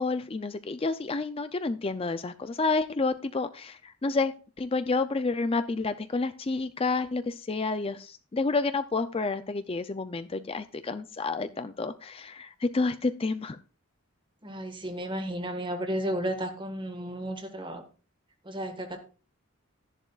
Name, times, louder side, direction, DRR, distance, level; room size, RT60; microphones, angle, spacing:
voice 1, 0.0-4.3 4.6-13.6, left 3 dB, 25° left, 0.4 m, -29 dB
voice 2, 14.4-17.8 18.4-19.0, right 1 dB, 20° right, 1.5 m, -33 dB
13.5 x 11.0 x 2.4 m
head